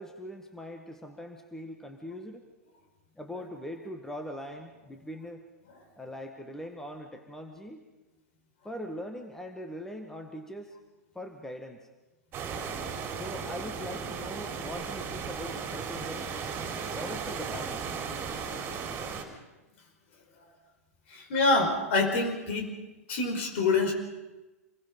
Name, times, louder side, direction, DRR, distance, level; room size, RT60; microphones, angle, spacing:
voice 1, 0.0-2.4 3.2-5.5 6.0-7.9 8.6-10.8 11.1-11.9 13.2-16.3 16.9-18.0, equal, 5° left, 5 dB, 1.8 m, -41 dB
sound 1, 12.3-19.2, right 6 dB, 25° right, 4.0 m, -36 dB
voice 2, 21.1-22.7 23.1-23.9, left 3 dB, 50° left, 5 dB, 5.2 m, -26 dB
28.0 x 21.5 x 5.4 m, 1.1 s
figure-of-eight pair, 105°, 8 cm